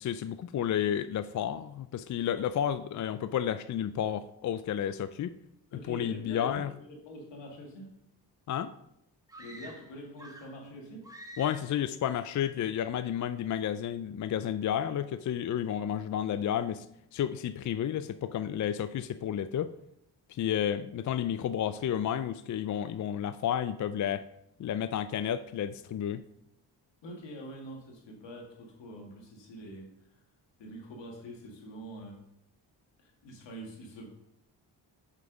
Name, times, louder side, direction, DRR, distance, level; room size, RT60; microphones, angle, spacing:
voice 1, 0.0-5.3 5.7-6.7 8.5-8.7 11.4-16.9 17.1-19.7 20.3-24.2 24.6-26.2, left 9 dB, 45° left, 13 dB, 0.4 m, -31 dB
voice 2, 5.7-7.9 9.4-11.1 27.0-29.9 30.6-32.2 33.0-34.1, equal, 85° left, 0 dB, 2.0 m, -45 dB
sound 1, 9.3-10.6 11.0-11.8, right 1 dB, 10° right, 1.4 m, -48 dB
5.8 x 5.8 x 5.1 m, 0.77 s
cardioid pair, 65°, 43 cm